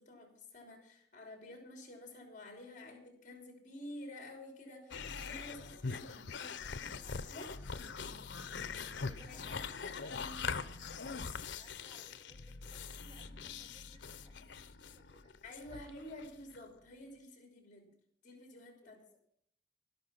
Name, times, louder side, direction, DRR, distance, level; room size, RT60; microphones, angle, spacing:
voice 1, 0.0-6.3 7.2-7.5 9.3-9.6 15.4-17.9 18.2-19.0, left 1 dB, 45° left, 3 dB, 3.3 m, -50 dB
sound 1, 4.9-16.6, left 5 dB, 75° left, 0.7 m, -43 dB
voice 2, 5.5-6.2 6.6-7.6 8.5-15.4 15.7-16.0 18.8-19.2, right 1 dB, 25° right, -1 dB, 3.3 m, -63 dB
12.5 x 12.0 x 5.9 m, 0.69 s
head